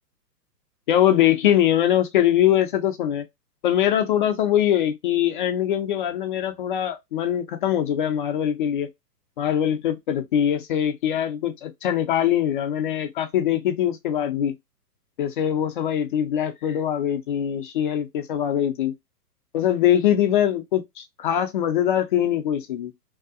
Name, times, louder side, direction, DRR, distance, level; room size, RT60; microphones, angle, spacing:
voice 1, 0.9-3.2 3.6-8.9 9.4-14.6 15.2-18.9 19.5-22.9, left 10 dB, 35° left, 0.4 m, -22 dB
2.7 x 2.3 x 2.3 m
hypercardioid pair, 125°, 49 cm